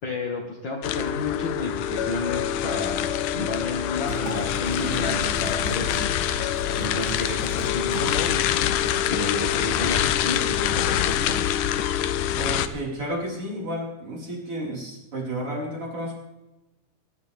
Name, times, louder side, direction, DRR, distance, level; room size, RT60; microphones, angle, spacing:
voice 1, 0.0-3.1 3.3-6.1 6.8-11.4, left 2 dB, 40° left, -1 dB, 2.2 m, -31 dB
sound 1, 0.8-12.7, left 10 dB, 85° left, 2.3 m, -25 dB
Liquid, 4.0-8.3 8.6-8.7, right 2 dB, 80° right, 4.2 m, -36 dB
voice 2, 12.4-16.1, right 1 dB, 45° right, -4 dB, 5.9 m, -32 dB
22.0 x 11.5 x 3.6 m, 0.98 s
omnidirectional pair, 3.7 m